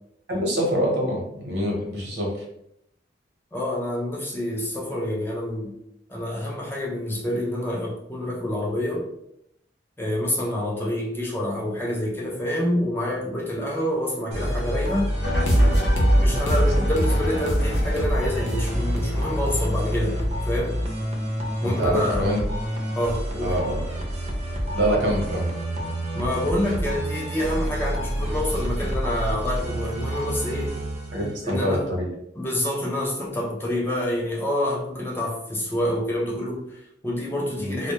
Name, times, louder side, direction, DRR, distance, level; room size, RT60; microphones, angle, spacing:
voice 1, 0.3-2.3 21.6-22.4 23.4-23.8 24.7-25.5 31.1-32.1 37.6-37.7, equal, 65° right, -1 dB, 0.8 m, -25 dB
voice 2, 3.5-5.8 6.1-9.1 10.0-15.1 16.1-20.2 20.5-20.8 21.6-22.3 23.0-23.6 26.1-30.8 31.4-31.9 32.4-37.9, left 1 dB, 10° left, -3 dB, 0.4 m, -27 dB
sound 1, 14.3-31.8, equal, 35° right, 0.5 m, -28 dB
sound 2, 15.2-20.2, equal, 80° left, 0.6 m, -22 dB
2.1 x 2.1 x 2.8 m, 0.77 s
head